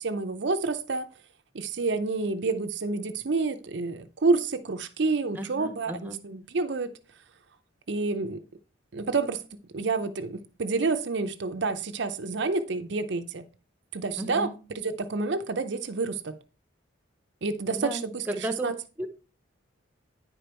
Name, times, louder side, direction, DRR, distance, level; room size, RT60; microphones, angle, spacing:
voice 1, 0.0-1.1 1.5-6.9 7.9-8.4 8.9-9.4 9.7-13.4 13.9-14.5 14.8-16.4 17.4-18.7, right 3 dB, 60° right, 0.6 m, -29 dB
voice 2, 5.3-6.2 14.2-14.5 17.7-18.7 19.0-19.1, right 1 dB, 10° right, 0.8 m, -34 dB
9.7 x 5.1 x 4.4 m
head